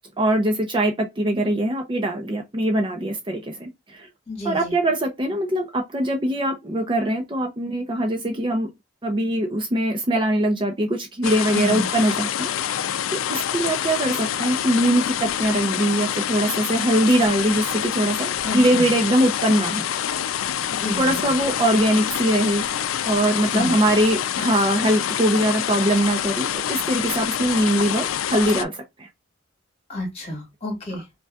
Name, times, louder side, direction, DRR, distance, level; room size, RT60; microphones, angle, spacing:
voice 1, 0.2-4.1 4.4-8.7 9.0-19.8 21.0-22.6 23.0-29.1, right 1 dB, 25° right, 0.5 m, -22 dB
voice 2, 4.3-4.7 11.5-11.9 18.4-18.9 20.7-21.4 23.5-23.8 29.9-31.1, left 1 dB, 30° left, 2.0 m, -30 dB
sound 1, 11.2-28.6, left 10 dB, 85° left, 0.4 m, -26 dB
5.2 x 2.3 x 2.3 m
head